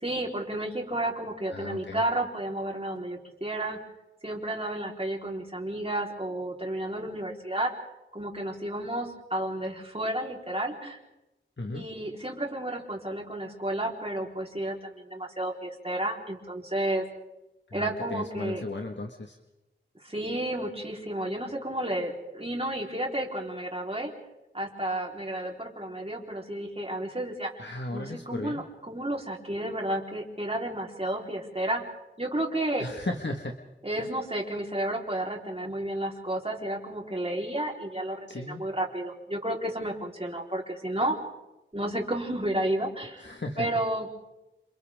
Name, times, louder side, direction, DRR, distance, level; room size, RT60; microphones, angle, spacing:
voice 1, 0.0-3.8 4.2-7.7 8.1-11.0 11.7-17.0 17.7-18.6 20.0-24.1 24.5-27.5 27.9-31.8 32.2-32.9 33.8-41.2 41.7-43.3 43.6-44.1, right 1 dB, 30° right, -1 dB, 4.0 m, -32 dB
voice 2, 1.5-2.0 11.6-11.8 17.7-19.4 27.6-28.6 32.8-33.6 38.3-38.6 43.2-43.7, left 2 dB, 65° left, 2 dB, 1.7 m, -35 dB
28.0 x 28.0 x 3.7 m, 0.98 s
wide cardioid pair, 45°, 20 cm